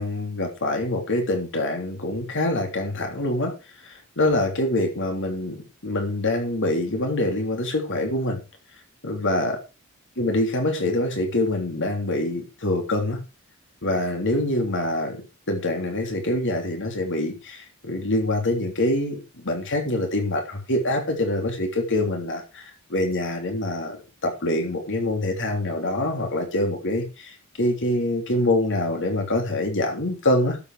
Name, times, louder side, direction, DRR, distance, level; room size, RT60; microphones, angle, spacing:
voice 1, 0.0-3.5 3.8-8.4 9.0-9.6 10.2-13.2 13.8-22.6 22.9-24.0 24.2-30.6, left 1 dB, 60° left, 3 dB, 3.3 m, -25 dB
12.5 x 8.2 x 5.0 m, 0.29 s
head